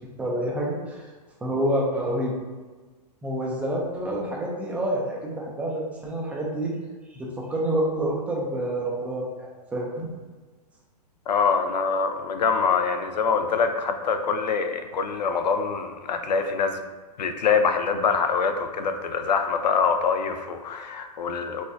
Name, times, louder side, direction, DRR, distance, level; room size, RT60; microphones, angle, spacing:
voice 1, 0.2-1.0 1.4-2.3 3.2-6.7 7.1-10.1, right 1 dB, 5° right, -3 dB, 0.3 m, -28 dB
voice 2, 11.3-16.8 17.2-21.6, left 5 dB, 90° left, 7 dB, 0.4 m, -24 dB
4.1 x 2.3 x 2.5 m, 1.3 s
hypercardioid pair, 135°, 21 cm